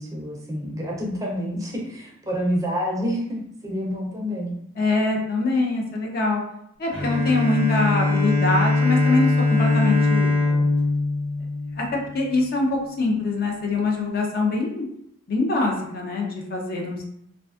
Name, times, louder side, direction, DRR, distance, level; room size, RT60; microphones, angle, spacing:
voice 1, 0.0-4.5, equal, 15° right, -3 dB, 0.4 m, -28 dB
voice 2, 4.8-6.4 6.8-10.7 11.8-11.9 12.1-14.8 15.3-17.0, left 3 dB, 50° left, 0 dB, 0.5 m, -24 dB
Bowed string instrument, 6.9-12.4, left 3 dB, 80° left, 0.8 m, -22 dB
2.4 x 2.3 x 2.3 m, 0.73 s
head